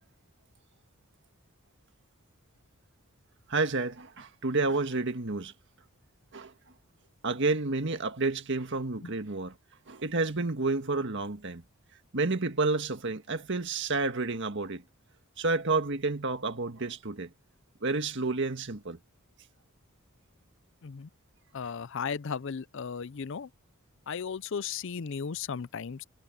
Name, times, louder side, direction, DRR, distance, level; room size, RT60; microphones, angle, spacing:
voice 1, 3.5-5.5 6.3-6.5 7.2-9.5 9.9-11.6 12.1-14.8 15.4-17.3 17.8-19.0, right 3 dB, 55° right, 1.7 m, -30 dB
voice 2, 21.5-23.5 24.1-26.0, left 6 dB, 60° left, 0.5 m, -35 dB
head